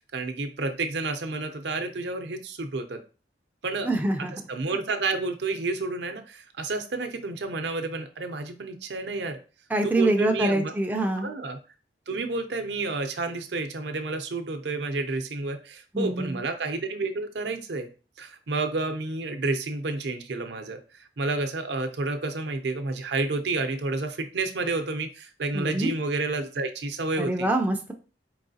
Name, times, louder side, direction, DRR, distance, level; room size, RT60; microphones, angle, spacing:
voice 1, 0.0-3.0 3.6-3.9 4.2-9.4 9.8-10.7 11.2-11.6 12.1-17.9 18.2-27.5, right 3 dB, 70° right, 7 dB, 0.6 m, -30 dB
voice 2, 3.8-4.3 9.7-11.3 15.9-16.4 25.5-25.9 27.2-27.9, right 1 dB, 10° right, 2 dB, 0.4 m, -25 dB
4.6 x 3.2 x 2.7 m, 0.34 s
head